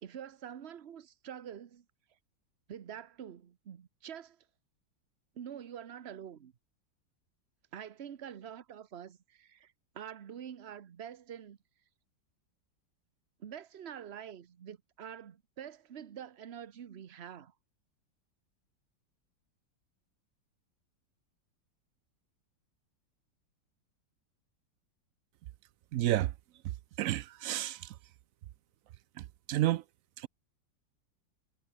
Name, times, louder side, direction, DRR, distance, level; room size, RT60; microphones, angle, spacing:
voice 1, 0.0-1.8 2.7-4.4 5.3-6.5 7.7-11.6 13.4-17.5, right 9 dB, 45° right, 0.9 m, -46 dB
voice 2, 25.9-26.3 27.0-27.9 29.5-29.8 30.2-30.3, right 14 dB, 85° right, 0.7 m, -30 dB
omnidirectional pair, 2.0 m